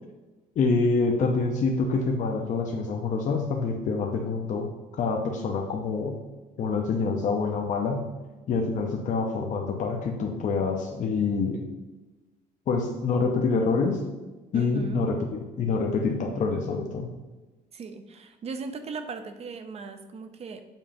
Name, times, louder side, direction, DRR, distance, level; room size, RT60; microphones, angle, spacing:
voice 1, 0.6-4.7 5.0-6.2 6.6-8.1 8.5-11.6 12.7-14.0 14.5-17.1, left 4 dB, 50° left, 2 dB, 0.7 m, -26 dB
voice 2, 14.5-15.0 17.7-20.6, right 4 dB, 40° right, 8 dB, 0.6 m, -37 dB
7.1 x 2.5 x 5.5 m, 1.2 s
cardioid pair, 110°, 17 cm